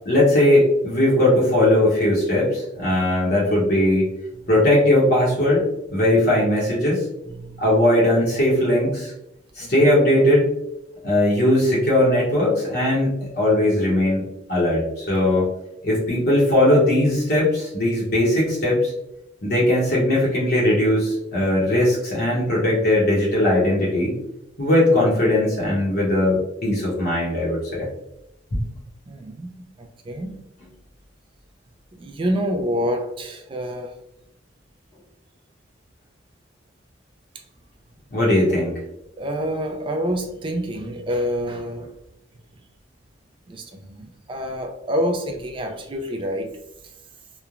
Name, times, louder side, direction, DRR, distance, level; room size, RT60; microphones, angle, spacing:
voice 1, 0.1-4.1 4.5-5.6 5.9-7.1 7.6-9.1 9.5-10.5 11.0-15.5 15.8-18.9 19.4-24.2 24.6-27.9 28.5-28.6 38.1-38.8, left 1 dB, 50° left, -6 dB, 0.7 m, -19 dB
voice 2, 29.1-30.4 32.0-34.0 39.2-41.9 43.5-46.6, equal, 25° right, 4 dB, 0.3 m, -27 dB
3.0 x 2.1 x 2.4 m, 0.82 s
head